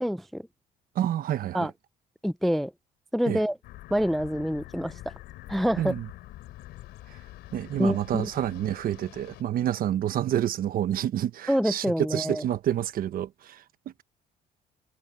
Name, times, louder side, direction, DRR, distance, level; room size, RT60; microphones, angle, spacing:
voice 1, 0.0-0.4 1.5-1.7 2.2-2.7 3.1-3.6 3.9-4.9 5.5-5.9 7.8-8.3 11.5-12.4, equal, ahead, 0.3 m, -26 dB
voice 2, 0.9-1.7 3.3-3.4 5.8-6.1 7.5-11.9 12.1-13.6, right 11 dB, 60° right, 1.1 m, -28 dB
sound 1, 3.6-9.4, left 15 dB, 80° left, 3.3 m, -45 dB
cardioid pair, 110°, 17 cm